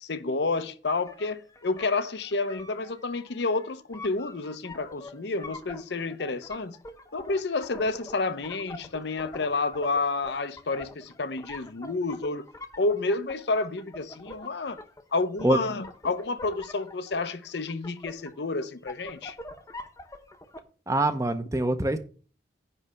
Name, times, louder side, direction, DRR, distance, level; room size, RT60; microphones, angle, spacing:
voice 1, 0.0-6.8 7.1-12.5 12.8-14.8 15.1-19.4, left 3 dB, 70° left, 0.7 m, -30 dB
sound 1, 0.8-20.6, left 2 dB, 15° left, 0.8 m, -45 dB
voice 2, 20.9-22.0, right 2 dB, 15° right, 0.6 m, -24 dB
9.9 x 3.3 x 6.6 m
head